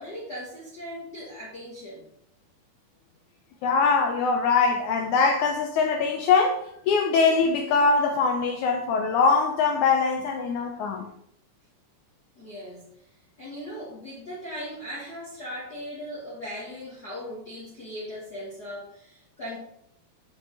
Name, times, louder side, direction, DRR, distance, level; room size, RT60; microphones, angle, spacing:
voice 1, 0.0-2.0 12.3-12.8 13.4-19.6, equal, 55° left, 1.1 m, -38 dB
voice 2, 3.6-11.1, left 4 dB, 85° left, 1.7 m, -22 dB
6.4 x 5.2 x 4.6 m
omnidirectional pair, 4.2 m